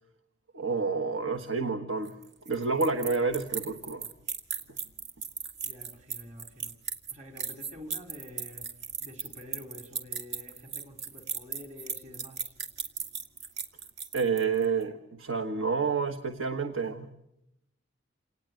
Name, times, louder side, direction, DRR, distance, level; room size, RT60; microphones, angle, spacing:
voice 1, 0.5-2.2 2.4-4.1 14.1-17.1, right 4 dB, 85° right, 1.4 m, -29 dB
sound 1, 2.1-14.7, right 6 dB, 60° right, 2.2 m, -37 dB
voice 2, 5.6-6.8 7.1-8.7 9.0-12.5, left 1 dB, 40° right, 3.6 m, -48 dB
28.0 x 19.0 x 9.1 m
head